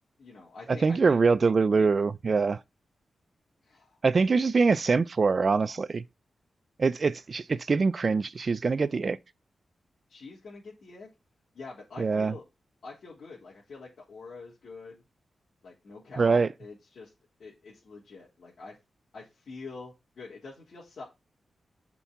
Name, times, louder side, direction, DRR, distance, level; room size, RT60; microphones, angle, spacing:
voice 1, 0.2-1.2 3.7-4.0 10.1-11.1 11.5-12.4 12.8-15.0 15.6-17.1 17.4-18.8 19.1-21.0, left 3 dB, 65° left, 3.9 m, -45 dB
voice 2, 0.8-2.6 4.0-6.0 6.8-9.2 12.0-12.3 16.2-16.5, right 4 dB, 45° right, 0.6 m, -24 dB
7.1 x 5.5 x 5.9 m
wide cardioid pair, 120°, 0 cm